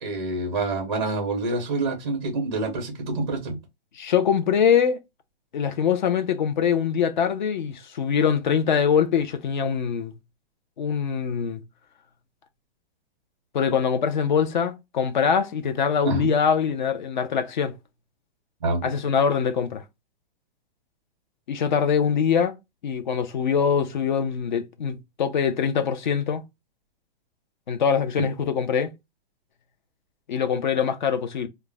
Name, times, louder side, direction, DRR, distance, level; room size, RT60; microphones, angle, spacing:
voice 1, 0.0-3.6 16.0-16.3 18.6-18.9, right 2 dB, 25° right, 0.4 m, -27 dB
voice 2, 4.0-5.0 5.5-10.1 10.8-11.6 13.5-17.7 18.8-19.8 21.5-22.5 22.8-26.4 27.7-28.9 30.3-31.5, left 7 dB, 50° left, 0.4 m, -23 dB
2.4 x 2.0 x 3.1 m
hypercardioid pair, 175°, 31 cm